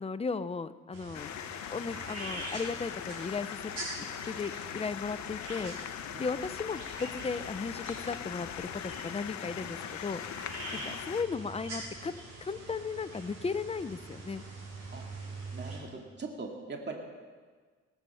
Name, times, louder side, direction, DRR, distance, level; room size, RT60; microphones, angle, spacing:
voice 1, 0.0-1.3 1.7-3.7 4.3-5.8 6.2-10.2 10.7-12.1 12.4-14.4, left 4 dB, 20° left, 13 dB, 0.6 m, -36 dB
sound 1, 0.9-15.8, right 2 dB, 55° right, 5.1 m, -44 dB
sound 2, 1.1-11.2, left 11 dB, 70° left, 0.7 m, -41 dB
voice 2, 5.9-6.2 10.6-10.9 14.9-15.1 15.5-17.0, right 3 dB, 35° right, 1 dB, 2.3 m, -42 dB
18.5 x 8.6 x 5.7 m, 1.5 s
cardioid pair, 90°, 30 cm